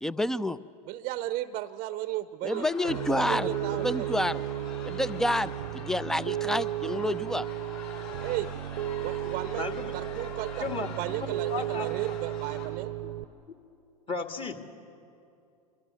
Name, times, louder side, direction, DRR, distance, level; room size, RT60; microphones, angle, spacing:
voice 1, 0.0-0.6 2.4-4.4 4.8-7.5, left 1 dB, ahead, 18 dB, 0.5 m, -29 dB
voice 2, 0.9-4.1 8.2-8.5 9.0-9.7 9.9-12.9, right 15 dB, 40° right, 14 dB, 0.8 m, -35 dB
sound 1, 2.5-12.7, left 3 dB, 50° left, 8.0 m, -43 dB
Piano, 2.9-13.2, right 14 dB, 70° right, 0.8 m, -34 dB
voice 3, 9.6-9.9 10.6-10.9 11.5-11.9 13.0-13.2 14.1-14.6, left 4 dB, 25° left, 6 dB, 2.1 m, -33 dB
26.0 x 24.5 x 7.0 m, 2.6 s
hypercardioid pair, 95°, 21 cm